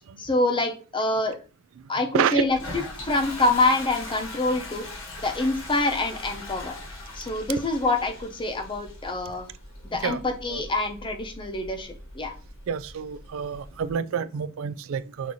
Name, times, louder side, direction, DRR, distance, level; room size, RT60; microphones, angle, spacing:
voice 1, 0.2-1.4 1.9-2.6 3.0-4.8 5.2-6.7 7.1-9.5 9.8-12.3, left 2 dB, 25° left, 0.8 m, -26 dB
Toilet flush, 2.5-13.9, left 2 dB, 70° left, 1.3 m, -41 dB
voice 2, 12.7-15.3, right 7 dB, 70° right, 0.4 m, -28 dB
6.1 x 2.7 x 3.0 m
head